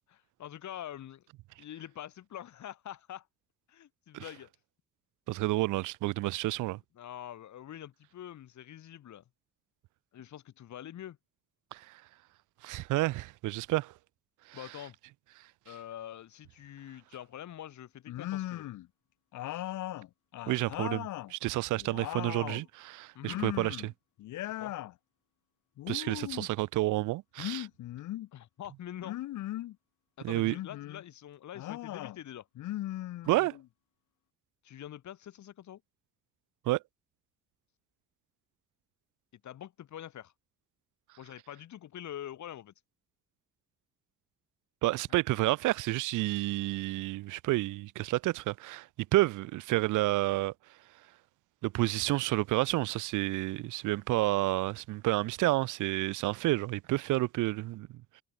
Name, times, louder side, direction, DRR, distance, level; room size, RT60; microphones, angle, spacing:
voice 1, 0.1-1.3 1.6-3.3 3.7-4.5 6.9-9.2 10.1-11.2 14.5-15.0 15.6-18.7 23.1-23.4 24.6-24.7 28.3-29.2 30.2-32.5 34.6-35.8 39.4-40.3 41.2-42.7, left 11 dB, 70° left, 5.0 m, -45 dB
voice 2, 5.3-6.8 11.7-12.0 12.6-13.9 20.5-23.9 25.9-27.7 30.2-30.5 33.3-33.6 36.7-36.8 44.8-50.5 51.6-58.0, right 18 dB, 80° right, 0.5 m, -30 dB
sound 1, 18.1-18.9 19.3-21.3 21.7-22.7 23.2-23.9 24.2-24.9 25.8-26.5 27.4-28.3 29.0-29.8 30.4-31.0 31.5-32.2 32.6-33.7, left 14 dB, 85° left, 3.2 m, -38 dB
cardioid pair, 90°, 30 cm